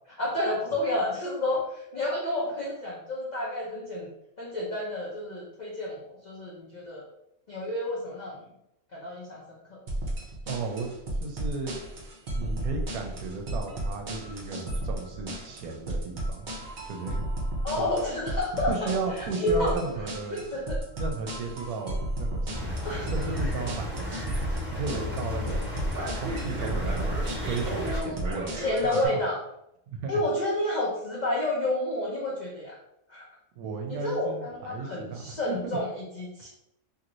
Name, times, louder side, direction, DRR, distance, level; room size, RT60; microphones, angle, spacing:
voice 1, 0.2-4.1 4.4-7.0 7.5-8.4 8.9-9.4 9.7-9.8 17.6-19.8 20.3-20.8 22.8-23.3 25.9-26.2 27.8-28.2 28.5-29.4 30.1-32.8 33.1-33.2 33.9-36.5, left 1 dB, 70° left, -4 dB, 0.4 m, -30 dB
sound 1, 9.9-29.1, right 1 dB, 50° right, 0.6 m, -33 dB
voice 2, 10.5-10.9 11.2-11.8 12.3-16.5 16.8-17.2 17.8-17.9 18.7-20.4 20.9-22.8 23.1-24.4 24.7-25.7 26.1-27.2 27.4-29.1 29.9-30.1 33.6-35.8, right 4 dB, 80° right, 3 dB, 1.0 m, -35 dB
sound 2, 22.5-28.0, left 2 dB, 10° right, 0.9 m, -34 dB
2.9 x 2.8 x 2.5 m, 0.81 s
omnidirectional pair, 1.6 m